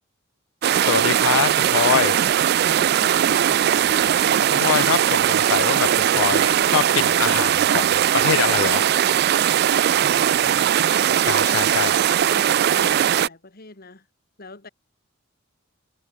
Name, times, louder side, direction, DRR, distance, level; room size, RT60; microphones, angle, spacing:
sound 1, 0.6-13.3, right 10 dB, 55° right, 0.3 m, -19 dB
voice 1, 0.8-2.2 4.5-8.9 11.3-12.0, left 9 dB, 85° left, 0.3 m, -24 dB
voice 2, 2.8-4.2 10.0-11.1 12.1-14.1 14.4-14.7, left 2 dB, 50° left, 2.6 m, -42 dB
head